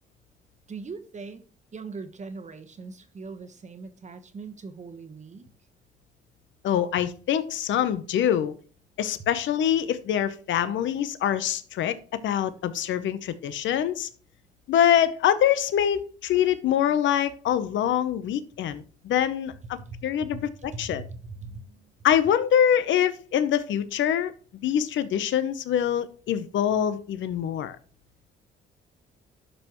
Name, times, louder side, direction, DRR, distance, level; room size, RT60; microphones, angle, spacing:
voice 1, 0.7-1.4 1.7-5.5 19.9-20.1 20.3-20.4 20.7-21.9, right 4 dB, 35° right, 1.1 m, -40 dB
voice 2, 6.6-8.5 9.0-14.1 14.7-19.5 20.0-21.0 22.0-24.3 24.6-27.8, left 10 dB, 75° left, 0.8 m, -24 dB
12.0 x 5.5 x 3.0 m
cardioid pair, 90°, 20 cm